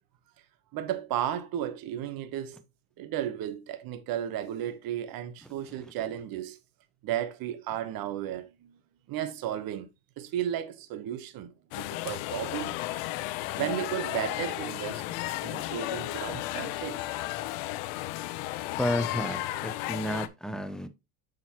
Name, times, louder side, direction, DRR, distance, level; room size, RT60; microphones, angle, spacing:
voice 1, 0.7-2.6 3.0-6.6 7.0-8.8 9.1-9.9 10.2-12.7 13.6-15.0 15.4-17.0, right 11 dB, 55° right, 1.0 m, -34 dB
sound 1, 11.7-20.3, left 16 dB, 75° left, 0.8 m, -34 dB
voice 2, 18.8-20.9, left 1 dB, ahead, 0.7 m, -32 dB
7.2 x 6.3 x 2.9 m
supercardioid pair, 105°, 43 cm